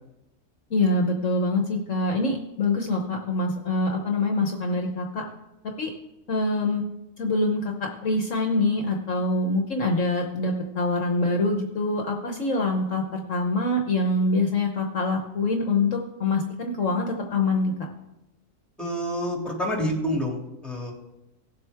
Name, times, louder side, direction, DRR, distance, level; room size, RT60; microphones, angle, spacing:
voice 1, 0.7-5.2 5.8-5.9 6.3-6.8 7.2-17.7, left 2 dB, 55° left, 2 dB, 1.3 m, -25 dB
voice 2, 18.8-20.9, equal, ahead, -2 dB, 2.4 m, -28 dB
18.0 x 7.7 x 3.5 m, 0.93 s
omnidirectional pair, 1.6 m